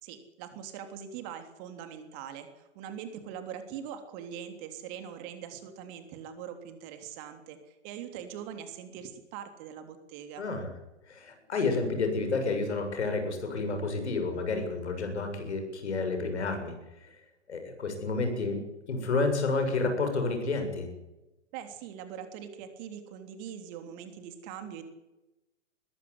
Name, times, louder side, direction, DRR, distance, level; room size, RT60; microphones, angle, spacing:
voice 1, 0.0-10.4 21.5-24.8, right 8 dB, 35° right, 8 dB, 3.3 m, -42 dB
voice 2, 10.4-10.7 11.1-16.7 17.5-18.6 18.9-20.9, left 3 dB, 70° left, 5 dB, 7.4 m, -30 dB
21.0 x 15.5 x 9.8 m, 1.0 s
figure-of-eight pair, 115°, 35 cm